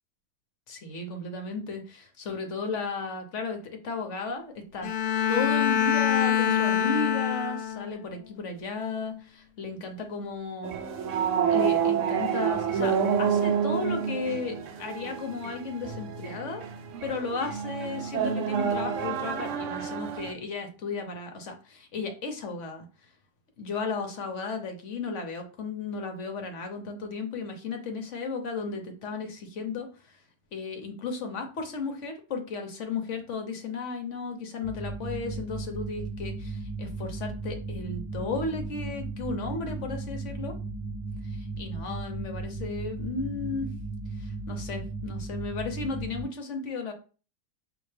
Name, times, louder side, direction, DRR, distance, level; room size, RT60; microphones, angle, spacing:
voice 1, 0.7-3.6 3.8-4.9 5.3-10.8 11.5-16.7 17.0-22.9 23.6-30.2 30.5-40.5 41.2-43.7 44.2-46.9, left 4 dB, 55° left, 5 dB, 1.1 m, -34 dB
Bowed string instrument, 4.8-8.0, left 9 dB, 80° left, 1.2 m, -25 dB
sound 1, 10.6-20.3, right 7 dB, 65° right, 0.8 m, -28 dB
sound 2, 34.6-46.2, right 3 dB, 40° right, 1.6 m, -36 dB
5.6 x 2.8 x 3.3 m, 0.36 s
omnidirectional pair, 1.8 m